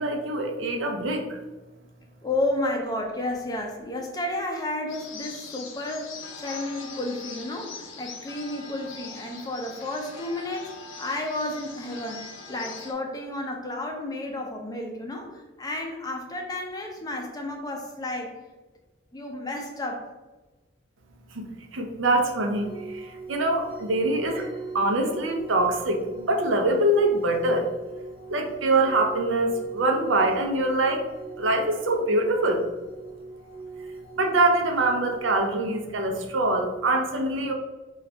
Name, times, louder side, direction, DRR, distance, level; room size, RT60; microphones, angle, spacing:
voice 1, 0.0-1.4 21.3-21.5 21.7-24.5 24.7-27.6 28.3-31.0 31.4-32.6 34.2-37.5, right 2 dB, 85° right, 3 dB, 0.6 m, -24 dB
voice 2, 2.2-18.3 19.1-20.1, left 1 dB, 20° left, 2 dB, 0.4 m, -32 dB
sound 1, 4.9-12.9, left 4 dB, 85° left, 0.5 m, -42 dB
sound 2, 22.6-35.4, right 3 dB, 25° right, 0.7 m, -41 dB
3.8 x 2.4 x 3.3 m, 1.2 s
head